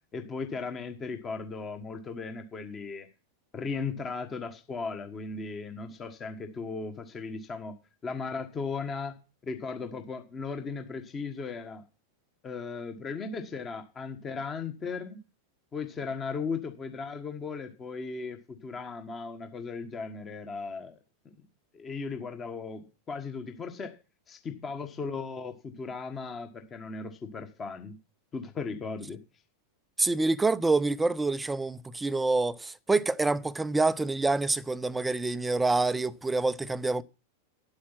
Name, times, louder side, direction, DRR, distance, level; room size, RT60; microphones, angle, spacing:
voice 1, 0.1-3.1 3.5-7.7 8.0-9.1 9.4-11.8 12.4-15.2 15.7-21.0 21.7-24.0 24.3-28.0 28.3-29.2, left 4 dB, 25° left, 1.5 m, -37 dB
voice 2, 30.0-37.0, right 3 dB, 10° right, 0.6 m, -27 dB
10.5 x 8.5 x 5.8 m
figure-of-eight pair, 90°, 0 cm